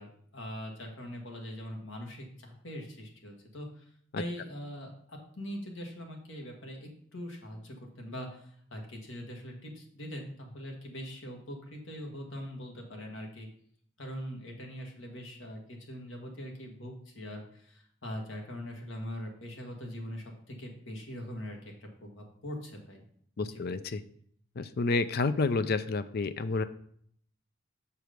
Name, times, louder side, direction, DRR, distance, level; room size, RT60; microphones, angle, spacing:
voice 1, 0.0-3.8 4.2-13.5 14.0-21.7 22.0-23.0 23.4-23.8, equal, 70° left, 2 dB, 1.7 m, -42 dB
voice 2, 23.4-24.0 24.6-26.6, left 3 dB, 55° left, 12 dB, 0.5 m, -29 dB
7.1 x 4.7 x 5.1 m, 0.64 s
head